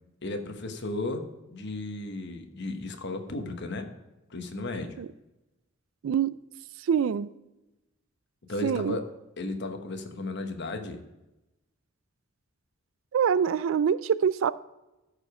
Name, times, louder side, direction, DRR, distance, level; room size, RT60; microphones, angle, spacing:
voice 1, 0.2-3.9 4.3-5.0 8.5-9.0 9.4-11.0, left 2 dB, 60° left, 6 dB, 1.2 m, -34 dB
voice 2, 6.0-6.3 6.8-7.3 8.6-9.0 13.1-14.5, right 7 dB, 75° right, 17 dB, 0.3 m, -25 dB
13.5 x 5.0 x 4.9 m, 0.99 s
head